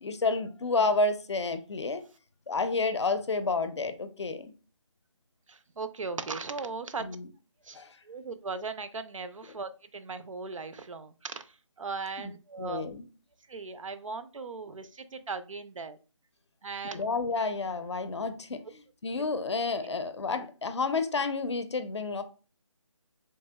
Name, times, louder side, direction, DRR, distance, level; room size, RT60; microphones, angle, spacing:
voice 1, 0.0-2.0 2.5-4.5 7.0-7.2 7.7-8.0 12.2-12.3 12.6-13.0 16.8-22.2, left 3 dB, 60° left, 0.5 m, -30 dB
voice 2, 5.5-7.1 7.6-7.8 8.0-12.8 13.5-16.0 16.6-17.0 19.8-20.0, right 4 dB, 85° right, 0.5 m, -38 dB
3.2 x 2.8 x 2.2 m
figure-of-eight pair, 165°, 16 cm